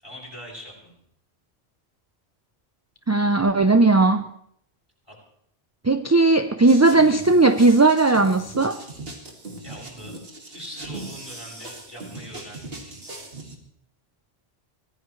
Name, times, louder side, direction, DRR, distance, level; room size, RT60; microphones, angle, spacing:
voice 1, 0.0-1.0 5.1-5.2 9.6-10.1 10.5-13.0, equal, 25° left, 7.1 m, -42 dB
voice 2, 3.1-4.2 5.8-8.8, right 3 dB, 20° right, 0.4 m, -17 dB
sound 1, 6.7-13.6, right 2 dB, 60° right, 2.4 m, -39 dB
24.0 x 17.0 x 3.2 m
omnidirectional pair, 1.1 m